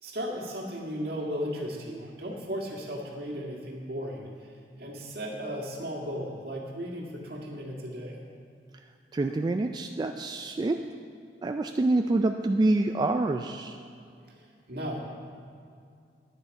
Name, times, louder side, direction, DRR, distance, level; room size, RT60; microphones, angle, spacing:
voice 1, 0.0-8.2 14.2-15.0, equal, 60° right, -1 dB, 1.9 m, -36 dB
voice 2, 9.1-10.9 11.4-13.8, right 2 dB, 25° right, 5 dB, 0.3 m, -26 dB
10.5 x 9.4 x 5.2 m, 2.3 s
head